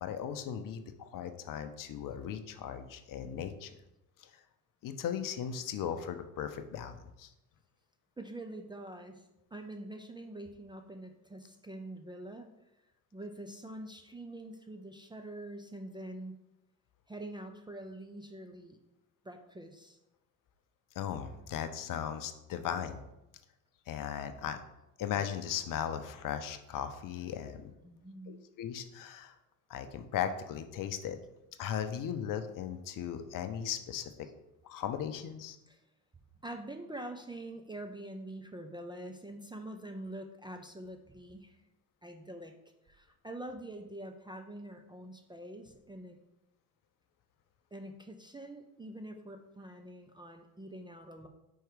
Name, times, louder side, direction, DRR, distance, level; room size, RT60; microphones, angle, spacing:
voice 1, 0.0-3.7 4.2-4.3 4.8-7.3 21.0-23.0 23.9-24.6 25.0-27.7 28.3-29.4 29.7-31.2 31.6-34.3 34.6-35.6, left 9 dB, 45° left, 9 dB, 0.7 m, -37 dB
voice 2, 8.2-12.5 13.1-16.4 17.1-18.8 19.2-20.0 27.8-28.4 35.7-35.8 36.4-41.6 42.0-42.6 42.9-46.2 47.7-51.3, right 1 dB, 10° right, 4 dB, 0.5 m, -45 dB
4.6 x 4.5 x 4.8 m, 0.91 s
hypercardioid pair, 60°, 47 cm